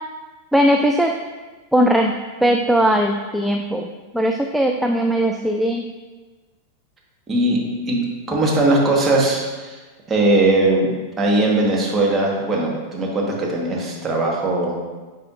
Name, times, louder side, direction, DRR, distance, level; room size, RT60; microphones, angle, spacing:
voice 1, 0.5-1.1 1.7-2.1 2.4-3.9 4.1-5.8, equal, ahead, 2 dB, 0.4 m, -18 dB
voice 2, 7.3-7.6 7.9-9.8 10.1-10.9 11.2-14.7, right 2 dB, 15° right, -3 dB, 1.4 m, -19 dB
9.0 x 4.3 x 2.6 m, 1.3 s
figure-of-eight pair, 90°, 0 cm